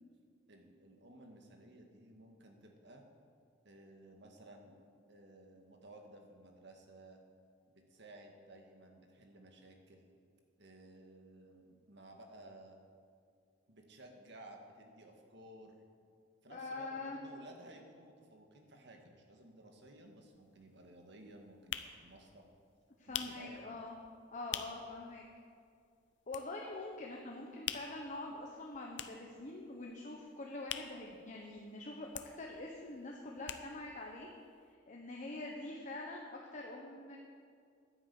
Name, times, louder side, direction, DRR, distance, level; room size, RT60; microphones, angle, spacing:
voice 1, 0.5-3.0 3.6-4.8 5.1-7.2 7.7-10.1 10.6-12.8 13.7-15.8 16.4-22.5 23.1-23.8, right 1 dB, 65° right, 3 dB, 1.9 m, -56 dB
voice 2, 16.5-17.2 23.0-23.9 24.3-25.2 26.3-32.1 32.4-34.3 34.9-37.2, left 2 dB, 40° left, 0 dB, 1.2 m, -45 dB
Fingersnaps and Claps, 19.8-19.9 20.2-25.0 25.3-25.4 25.7-26.9 27.2-31.7 32.0-34.0 34.3-34.4 34.6-34.7, left 10 dB, 65° left, 0.7 m, -45 dB
11.0 x 9.9 x 8.3 m, 2.3 s
head